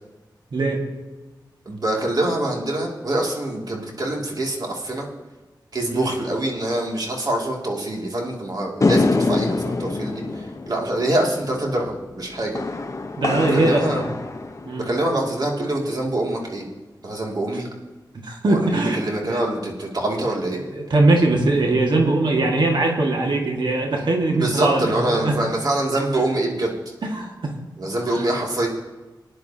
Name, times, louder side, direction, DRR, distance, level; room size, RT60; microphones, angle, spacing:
voice 1, 0.5-0.8 5.9-6.1 13.2-14.0 14.7-14.9 18.1-19.0 19.3-19.4 20.5-25.4 27.1-27.5, right 2 dB, 70° right, 0 dB, 2.0 m, -21 dB
voice 2, 1.7-5.1 5.7-12.6 13.3-14.0 14.8-16.7 17.0-17.7 18.4-20.6 24.3-26.9 27.8-28.7, right 1 dB, 55° right, -1 dB, 2.6 m, -25 dB
sound 1, 8.8-15.3, left 3 dB, 40° left, 1.0 m, -25 dB
20.0 x 10.0 x 2.9 m, 1.2 s
wide cardioid pair, 70°, 8 cm